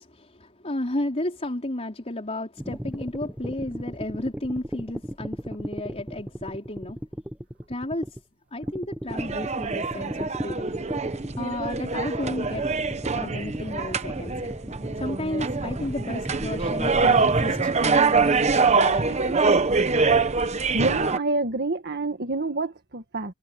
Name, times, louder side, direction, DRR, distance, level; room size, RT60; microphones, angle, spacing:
voice 1, 0.0-7.0 7.7-8.2 8.5-10.7 11.0-11.1 11.4-12.6 13.0-14.3 15.0-19.5, left 1 dB, 30° left, 4.3 m, -33 dB
sound 1, 2.6-8.2 8.6-17.6, equal, 5° right, 0.8 m, -35 dB
sound 2, 9.1-21.2, right 4 dB, 30° right, 1.0 m, -24 dB
voice 2, 20.7-23.3, right 2 dB, 50° right, 1.7 m, -27 dB
head